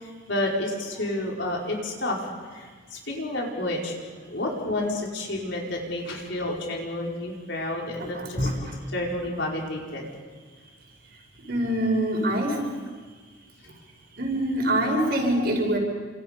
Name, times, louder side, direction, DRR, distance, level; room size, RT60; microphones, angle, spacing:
voice 1, 0.0-2.2 2.5-4.0 4.3-8.5 8.9-10.2, left 1 dB, 70° left, -1 dB, 5.1 m, -30 dB
voice 2, 8.0-8.6 11.5-12.6 14.2-15.8, right 1 dB, 55° right, 1 dB, 6.1 m, -24 dB
30.0 x 27.0 x 5.4 m, 1.5 s
head